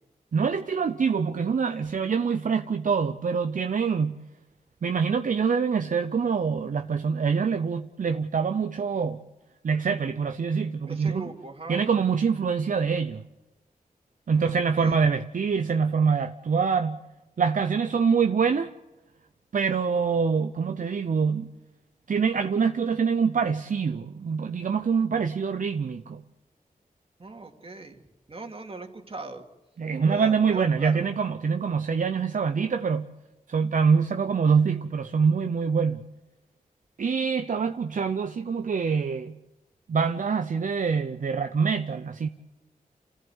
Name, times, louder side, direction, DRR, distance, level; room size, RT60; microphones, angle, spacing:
voice 1, 0.3-4.2 4.8-9.2 9.6-11.3 11.7-13.2 14.3-17.0 17.4-18.7 19.5-21.5 22.1-26.2 29.8-33.1 33.5-36.0 37.0-39.4 39.9-42.3, right 5 dB, 65° right, 0.7 m, -25 dB
voice 2, 10.9-11.8 14.3-15.0 27.2-28.0 28.3-29.5 30.0-31.1, right 2 dB, 40° right, 2.4 m, -39 dB
28.5 x 15.0 x 8.1 m
cardioid pair, 60°, 15 cm